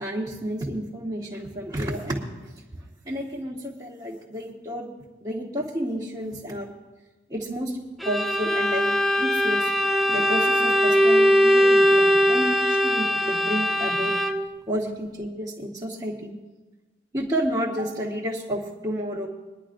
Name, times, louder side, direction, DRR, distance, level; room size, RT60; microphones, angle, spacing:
voice 1, 0.0-2.2 3.0-4.9 5.2-6.7 7.3-7.8 8.0-9.7 10.1-14.1 14.7-16.3 17.1-19.3, equal, 25° right, -6 dB, 1.2 m, -30 dB
Bowed string instrument, 8.0-14.6, equal, ahead, 0.3 m, -20 dB
22.5 x 10.5 x 2.5 m, 1.2 s
head